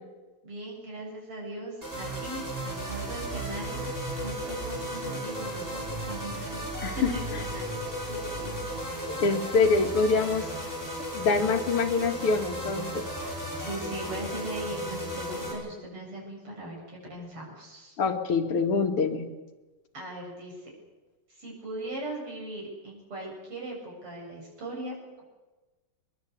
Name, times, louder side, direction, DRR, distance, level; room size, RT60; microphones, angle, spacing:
voice 1, 0.4-8.8 13.5-18.0 19.9-20.7 21.3-25.2, right 1 dB, 90° right, -2 dB, 8.9 m, -39 dB
sound 1, 1.8-15.5, right 1 dB, 10° right, 7.2 m, -35 dB
voice 2, 9.0-10.5 11.1-13.1 18.0-19.3, left 4 dB, 85° left, 5 dB, 2.7 m, -25 dB
22.0 x 21.5 x 8.2 m, 1.2 s
omnidirectional pair, 2.4 m